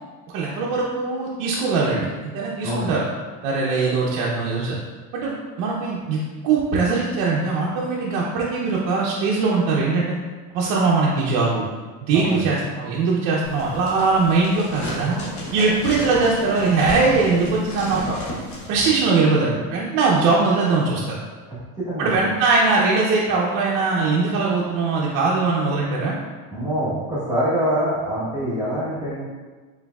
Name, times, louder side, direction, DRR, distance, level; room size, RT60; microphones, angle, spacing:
voice 1, 0.3-3.0 3.4-4.8 5.2-10.1 10.5-11.6 12.0-15.2 15.5-18.2 18.7-21.2 22.0-26.2, right 4 dB, 60° right, -4 dB, 0.6 m, -21 dB
voice 2, 12.1-12.5 21.5-22.2 26.5-29.2, equal, 10° right, -10 dB, 1.1 m, -25 dB
sound 1, 13.4-18.7, left 1 dB, 40° left, 1.2 m, -32 dB
4.4 x 4.0 x 2.3 m, 1.4 s
cardioid pair, 150°, 37 cm